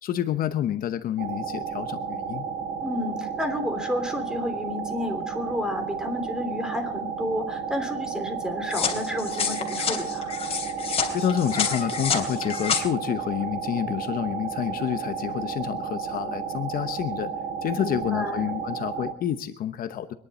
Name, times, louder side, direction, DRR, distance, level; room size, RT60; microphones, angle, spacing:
voice 1, 0.0-2.5 11.1-17.3 17.6-20.1, left 10 dB, 60° left, 10 dB, 0.9 m, -28 dB
sound 1, 1.2-19.1, right 6 dB, 60° right, 1.7 m, -32 dB
voice 2, 2.8-10.3 17.7-18.4, left 1 dB, 5° right, 7 dB, 3.1 m, -31 dB
sound 2, 8.7-12.8, left 6 dB, 35° left, 3.0 m, -28 dB
24.5 x 11.0 x 4.2 m, 0.63 s
cardioid pair, 110°, 17 cm